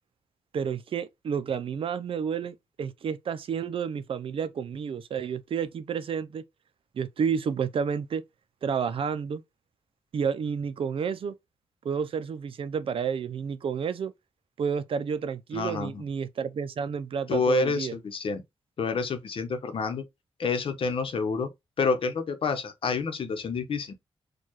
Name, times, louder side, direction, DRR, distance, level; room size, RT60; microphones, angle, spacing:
voice 1, 0.5-6.4 6.9-8.2 8.6-9.4 10.1-11.3 11.8-14.1 14.6-17.9, right 6 dB, 70° right, 0.5 m, -30 dB
voice 2, 15.5-16.0 17.3-18.4 18.8-20.0 20.4-21.5 21.8-23.9, left 4 dB, 65° left, 0.8 m, -28 dB
4.5 x 2.3 x 3.0 m
cardioid pair, 75°, 10 cm